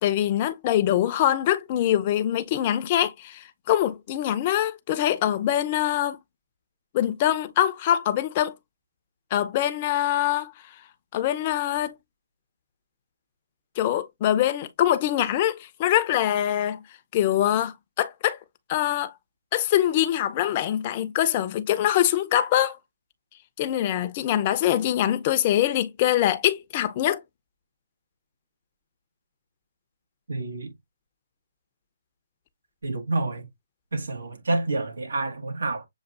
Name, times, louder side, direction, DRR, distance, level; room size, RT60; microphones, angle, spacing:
voice 1, 0.0-6.2 6.9-8.6 9.3-10.5 11.1-12.0 13.8-16.8 17.1-18.4 18.7-19.1 19.5-22.8 23.6-27.2, left 12 dB, 35° left, 0.6 m, -24 dB
voice 2, 30.3-30.7 32.8-33.5 33.9-35.9, right 2 dB, 80° right, 1.4 m, -28 dB
7.1 x 2.4 x 2.4 m
hypercardioid pair, 150°, 0 cm